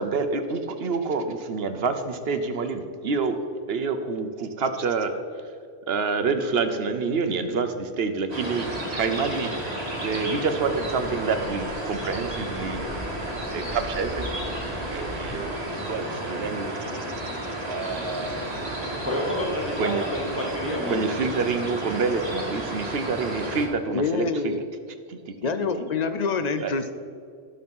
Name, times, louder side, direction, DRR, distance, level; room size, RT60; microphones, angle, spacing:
voice 1, 0.0-3.4 3.7-5.1 5.9-9.5 10.0-12.8 13.5-14.5 14.9-15.5 15.9-16.7 17.1-18.8 19.8-20.0 20.9-24.5 25.1-25.2 25.8-25.9 26.6-26.7, right 4 dB, 60° right, 8 dB, 1.0 m, -27 dB
sound 1, 8.3-23.7, right 1 dB, 30° right, 1.8 m, -32 dB
voice 2, 19.0-21.1, left 1 dB, 10° right, -2 dB, 1.5 m, -29 dB
voice 3, 23.9-24.6 25.4-26.9, left 4 dB, 55° left, 10 dB, 0.5 m, -26 dB
12.0 x 6.5 x 5.4 m, 2.4 s
omnidirectional pair, 1.2 m